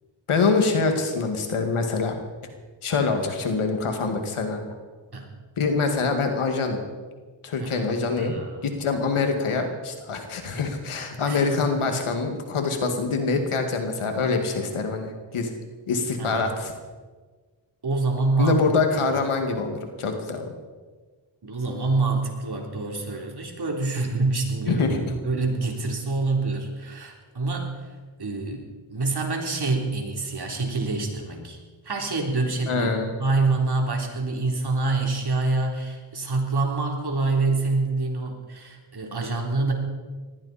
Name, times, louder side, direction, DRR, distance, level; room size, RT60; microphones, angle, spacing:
voice 1, 0.3-2.2 2.8-4.7 5.6-6.8 7.4-8.3 8.6-15.6 15.9-16.7 18.4-20.5 24.7-25.1 32.7-33.1, left 4 dB, 85° left, 5 dB, 2.2 m, -25 dB
voice 2, 8.2-8.7 11.3-11.7 11.9-12.1 16.2-16.5 17.8-18.6 21.4-27.9 28.2-28.6 28.9-32.9 33.2-39.7, right 3 dB, 50° right, 1 dB, 3.7 m, -26 dB
19.5 x 15.0 x 4.3 m, 1.4 s
cardioid pair, 55°, 49 cm